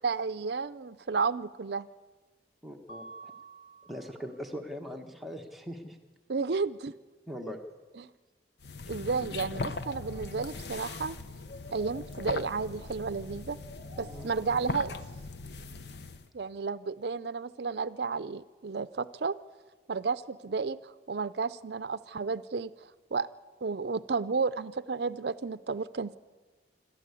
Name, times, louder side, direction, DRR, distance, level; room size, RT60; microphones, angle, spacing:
voice 1, 0.0-1.9 6.3-6.9 8.0-8.1 8.9-11.2 11.7-13.6 14.0-15.0 16.3-19.4 19.9-22.7 23.1-23.3 23.6-26.2, right 4 dB, 65° right, 15 dB, 0.5 m, -32 dB
voice 2, 2.6-3.3 3.8-6.0 7.3-7.6 14.0-14.3, equal, ahead, 2 dB, 1.4 m, -41 dB
Mallet percussion, 2.9-4.7, right 3 dB, 30° left, 1.8 m, -50 dB
sound 1, 8.6-16.3, left 3 dB, 65° left, 0.9 m, -39 dB
sound 2, 9.5-10.7 11.3-12.9 13.5-14.8 16.2-16.3, left 1 dB, 80° left, 3.3 m, -51 dB
26.5 x 13.0 x 8.3 m, 1.3 s
head